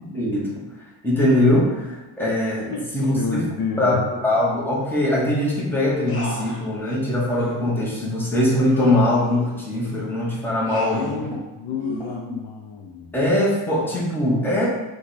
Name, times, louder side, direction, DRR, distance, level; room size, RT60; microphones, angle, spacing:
voice 1, 0.1-0.6 1.0-3.5 3.8-4.0 4.2-11.2 11.9-12.0 12.3-12.4 13.1-14.7, left 1 dB, 5° left, -6 dB, 0.9 m, -21 dB
sound 1, 1.2-1.5 2.3-2.6 3.0-3.2 4.3-4.4 4.8-4.9 5.3-5.4 6.1-7.0 7.4-7.6 8.0-8.1 8.6-10.1 10.7-11.2 11.8-12.2, equal, 25° left, 1.1 m, -37 dB
voice 2, 3.2-4.1 10.9-13.2, left 5 dB, 55° left, 0 dB, 0.5 m, -30 dB
4.7 x 2.3 x 4.0 m, 1.1 s
wide cardioid pair, 160°, 49 cm